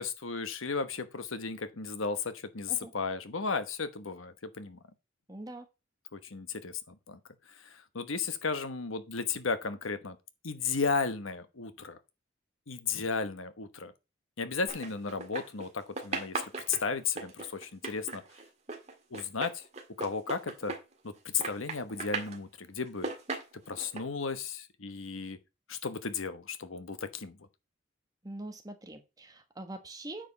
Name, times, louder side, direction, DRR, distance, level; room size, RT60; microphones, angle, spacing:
voice 1, 0.0-4.8 6.1-7.2 7.6-10.2 10.4-12.0 12.7-13.9 14.4-16.4 16.7-18.2 19.1-19.6 20.0-20.7 21.0-23.1 23.7-25.4 25.7-27.4, left 5 dB, 90° left, 1.1 m, -34 dB
voice 2, 5.3-5.7 28.2-30.3, right 1 dB, 20° right, 1.2 m, -43 dB
sound 1, 14.7-15.7 16.0-21.1 21.4-22.4 22.9-24.0, right 3 dB, 35° right, 1.7 m, -37 dB
9.1 x 5.1 x 5.5 m
head